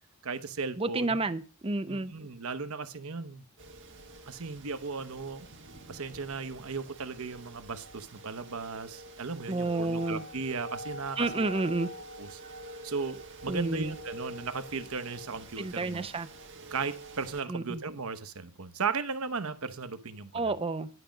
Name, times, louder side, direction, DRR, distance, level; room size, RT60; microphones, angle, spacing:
voice 1, 0.2-1.2 1.9-3.4 4.3-5.5 5.9-11.6 12.2-12.4 12.8-16.1 16.7-20.5, right 4 dB, 70° right, 0.9 m, -36 dB
voice 2, 0.8-2.1 9.5-10.2 11.2-11.9 13.5-13.9 15.6-16.3 17.5-17.8 20.3-20.9, right 3 dB, 25° right, 0.6 m, -30 dB
sound 1, 3.6-17.4, right 1 dB, 55° right, 1.6 m, -46 dB
11.0 x 5.2 x 7.1 m
head